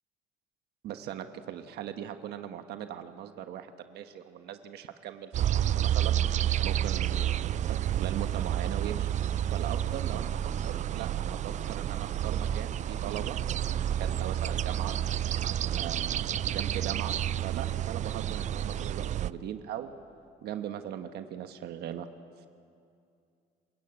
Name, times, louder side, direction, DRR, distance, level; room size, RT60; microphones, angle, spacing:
voice 1, 0.8-6.2 6.6-9.1 9.5-13.4 13.7-15.0 15.7-17.2 17.4-19.9 20.4-22.1, right 10 dB, 75° right, 8 dB, 1.3 m, -39 dB
sound 1, 5.3-19.3, right 11 dB, 45° right, 0.5 m, -30 dB
27.5 x 16.0 x 8.7 m, 2.4 s
cardioid pair, 110°, 17 cm